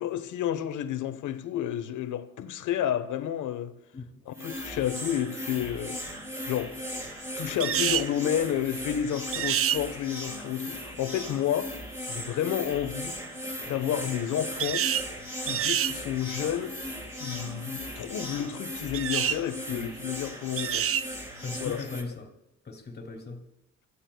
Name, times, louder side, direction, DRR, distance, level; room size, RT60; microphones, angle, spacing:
voice 1, 0.0-3.7 4.3-6.1 6.4-6.8 7.4-11.7 12.1-13.2 13.7-14.9 15.4-16.8 17.2-20.9 21.6-21.9, left 10 dB, 80° left, 1.2 m, -31 dB
sound 1, 4.3-22.0, equal, 10° right, 4.0 m, -38 dB
sound 2, 7.6-8.1 9.3-9.8 14.6-15.1 15.5-15.9 18.9-19.4 20.6-21.1, right 10 dB, 50° right, 0.5 m, -27 dB
voice 2, 21.4-22.3 22.6-23.4, left 3 dB, 35° left, 2.6 m, -38 dB
29.5 x 14.5 x 2.3 m
cardioid pair, 90°, 30 cm